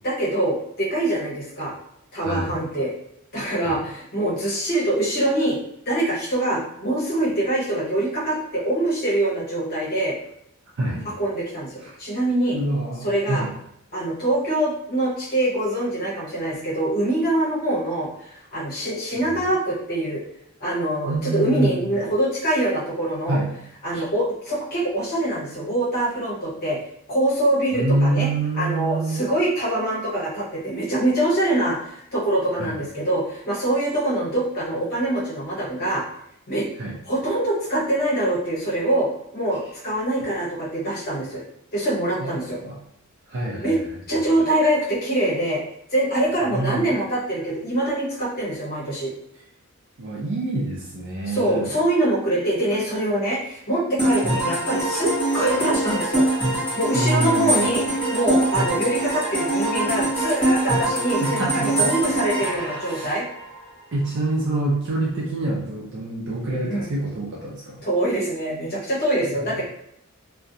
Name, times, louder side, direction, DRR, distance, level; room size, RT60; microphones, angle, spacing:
voice 1, 0.0-1.7 2.1-2.9 3.3-5.6 5.9-10.2 11.2-12.6 13.0-13.4 13.9-20.2 20.6-23.4 23.8-26.8 27.1-28.3 28.6-36.0 36.5-36.7 37.1-41.4 41.7-42.6 43.5-43.8 44.1-45.6 45.9-49.1 51.3-56.3 56.8-63.3 66.6-66.9 67.8-69.7, right 1 dB, 45° left, -6 dB, 0.8 m, -24 dB
voice 2, 2.1-2.6 3.6-3.8 10.8-11.1 11.8-11.9 12.5-13.5 19.1-19.5 21.1-22.1 23.3-23.5 23.9-24.0 27.7-29.2 32.6-32.8 36.8-37.0 42.2-42.8 43.3-43.8 44.1-44.4 46.4-46.9 50.0-51.7 54.2-54.5 56.9-57.7 61.2-61.9 62.4-63.2 63.9-67.8 69.2-69.7, right 2 dB, 60° right, -4 dB, 0.5 m, -27 dB
sound 1, 54.0-63.7, right 1 dB, 5° left, 0.8 m, -24 dB
2.4 x 2.1 x 2.7 m, 0.74 s
head